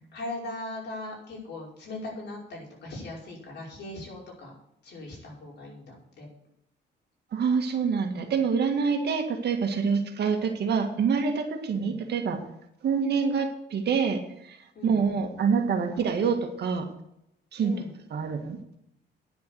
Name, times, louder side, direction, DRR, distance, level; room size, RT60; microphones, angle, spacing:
voice 1, 0.1-4.5 4.8-6.3 11.7-12.0 14.8-15.2 17.6-17.9, left 2 dB, 65° left, -3 dB, 5.3 m, -39 dB
voice 2, 7.3-12.4 12.8-14.6 14.8-16.9 17.5-17.7 18.1-18.6, right 6 dB, 65° right, 5 dB, 1.9 m, -26 dB
10.0 x 6.9 x 8.2 m, 0.78 s
cardioid pair, 115°, 19 cm